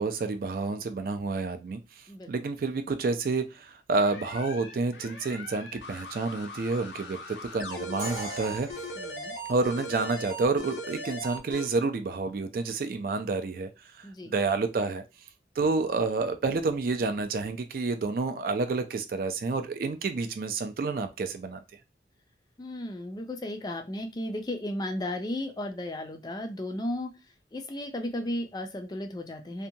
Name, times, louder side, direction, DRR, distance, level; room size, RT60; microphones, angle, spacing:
voice 1, 0.0-1.8 2.3-8.7 9.5-13.7 14.0-15.0 15.6-21.6, right 3 dB, 55° right, 0.3 m, -29 dB
sound 1, 4.0-11.7, equal, 80° left, 0.6 m, -39 dB
Crash cymbal, 8.0-9.9, right 2 dB, 25° right, 0.9 m, -41 dB
voice 2, 9.0-9.3 14.0-14.3 22.6-27.1 27.5-29.7, left 1 dB, 25° left, 0.4 m, -34 dB
2.7 x 2.2 x 2.7 m
head